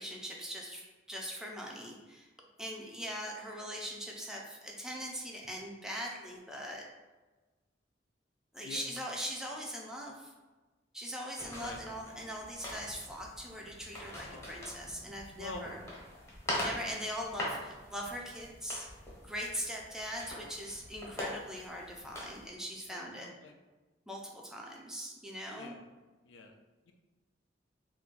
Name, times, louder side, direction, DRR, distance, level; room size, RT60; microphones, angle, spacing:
voice 1, 0.0-2.3 2.6-6.9 8.5-10.3 10.9-15.8 16.6-18.9 19.2-23.3 24.1-25.8, equal, 5° right, -1 dB, 0.4 m, -41 dB
sound 1, 11.4-22.5, left 1 dB, 15° left, 0.8 m, -43 dB
voice 2, 22.2-22.6 22.9-23.5 25.6-25.8 26.2-26.5 26.9-27.0, left 3 dB, 75° left, 4 dB, 0.4 m, -46 dB
2.5 x 2.2 x 3.7 m, 1.2 s
head